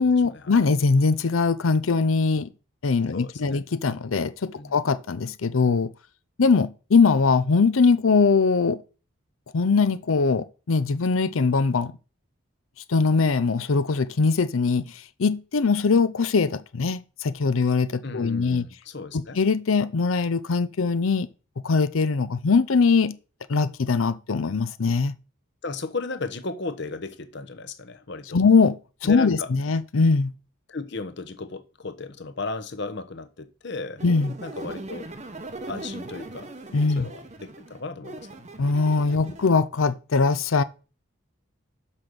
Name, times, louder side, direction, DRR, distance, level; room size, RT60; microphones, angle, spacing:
voice 1, 0.0-2.5 2.8-5.9 6.4-8.8 9.5-11.9 12.9-18.7 19.1-21.3 21.6-23.2 23.5-25.2 28.3-30.3 34.0-34.3 36.7-37.1 38.6-40.6, left 4 dB, 75° left, 0.6 m, -21 dB
voice 2, 3.1-3.6 4.6-4.7 18.0-19.4 25.6-28.4 29.0-29.5 30.7-34.0 34.4-35.1 35.7-36.5 37.0-38.3, left 3 dB, 55° left, 1.0 m, -35 dB
sound 1, 34.0-39.5, right 2 dB, 35° right, 0.8 m, -39 dB
6.2 x 5.6 x 6.6 m
head